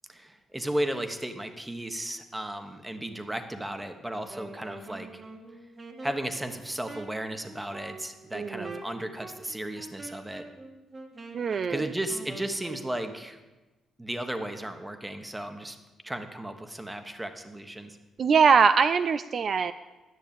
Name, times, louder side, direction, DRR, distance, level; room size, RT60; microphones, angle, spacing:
voice 1, 0.1-5.2 6.0-10.4 11.7-13.4 14.0-15.8 16.0-18.0, right 1 dB, 10° right, 7 dB, 1.2 m, -35 dB
Wind instrument woodwind instrument, 4.2-12.9, right 2 dB, 30° right, 1.5 m, -45 dB
voice 2, 8.3-8.8 11.3-11.9 18.2-19.7, right 6 dB, 50° right, 12 dB, 0.3 m, -22 dB
11.0 x 6.6 x 8.8 m, 1.2 s
cardioid pair, 90°, 0 cm